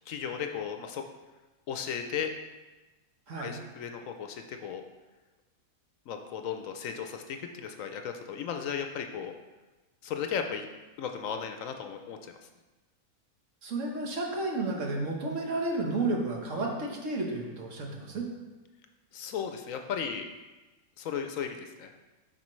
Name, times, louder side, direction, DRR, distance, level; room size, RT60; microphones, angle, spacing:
voice 1, 0.1-1.0 1.7-2.3 3.4-4.8 6.1-9.3 10.0-10.7 11.0-12.5 19.1-20.3 21.0-22.0, left 7 dB, 70° left, 6 dB, 0.9 m, -35 dB
voice 2, 13.6-18.2, right 2 dB, 60° right, 0 dB, 1.5 m, -32 dB
11.5 x 4.5 x 3.1 m, 1.2 s
omnidirectional pair, 1.5 m